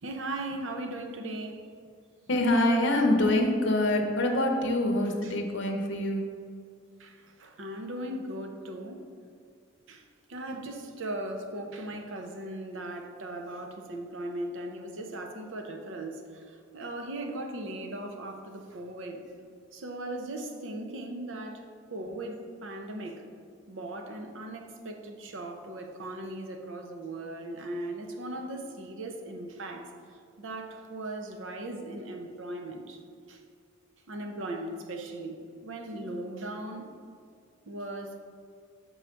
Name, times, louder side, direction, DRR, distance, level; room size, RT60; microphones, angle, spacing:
voice 1, 0.0-1.7 5.2-5.4 7.0-9.1 9.9-10.0 10.3-19.2 19.7-23.2 23.7-29.9 30.4-33.0 33.3-33.4 34.1-36.9 37.7-38.2, right 1 dB, 65° right, 3 dB, 0.7 m, -38 dB
voice 2, 2.3-6.3, left 1 dB, 60° left, 2 dB, 0.7 m, -25 dB
6.3 x 3.9 x 4.4 m, 2.2 s
head